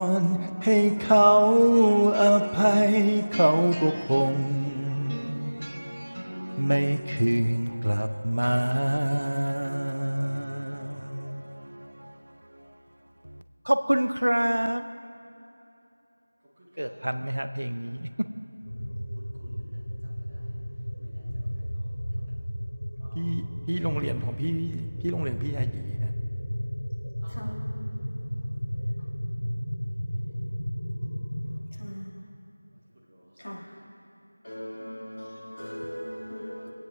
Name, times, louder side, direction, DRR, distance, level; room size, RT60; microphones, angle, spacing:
voice 1, 0.0-11.9 13.7-14.9 16.8-18.1 23.2-26.1, right 1 dB, 80° right, 0.6 m, -24 dB
voice 2, 16.6-17.2 19.1-20.5 21.0-21.9 23.0-23.4 23.6-24.7 27.2-27.6 28.3-28.4 30.1-30.3 32.9-33.8, equal, 25° right, 1.9 m, -56 dB
sound 1, 18.6-31.6, equal, 90° left, 3.0 m, -33 dB
voice 3, 31.8-32.2 33.4-33.7 34.4-36.7, equal, 70° left, 2.4 m, -39 dB
24.0 x 9.3 x 2.6 m
figure-of-eight pair, 175°, 0 cm